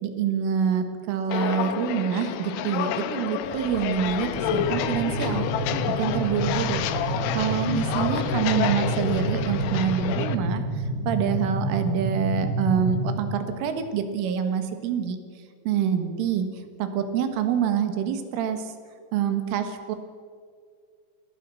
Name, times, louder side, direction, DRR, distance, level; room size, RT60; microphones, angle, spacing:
voice 1, 0.0-5.5 6.0-6.8 7.4-10.6 11.1-15.2 15.7-16.5 16.8-18.7 19.1-20.0, right 8 dB, 85° right, 8 dB, 4.2 m, -26 dB
Walk footsteps, 1.3-10.3, left 10 dB, 80° left, 3.3 m, -29 dB
sound 1, 3.4-10.0, left 2 dB, 40° left, 4.7 m, -42 dB
sound 2, 4.4-13.2, right 1 dB, 25° right, 8.6 m, -29 dB
30.0 x 18.0 x 6.4 m, 2.2 s
omnidirectional pair, 5.6 m